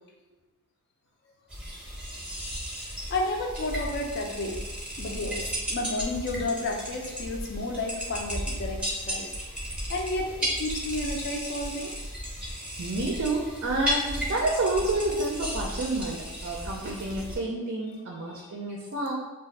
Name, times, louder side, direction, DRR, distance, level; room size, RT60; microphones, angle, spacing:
sound 1, 1.5-17.4, equal, 5° right, 0.6 m, -34 dB
voice 1, 3.1-4.6 5.0-9.3 9.9-11.9 18.4-18.5, left 2 dB, 50° left, 1 dB, 0.4 m, -32 dB
voice 2, 12.8-19.1, right 2 dB, 55° right, -2 dB, 0.4 m, -29 dB
2.5 x 2.3 x 4.0 m, 1.1 s
head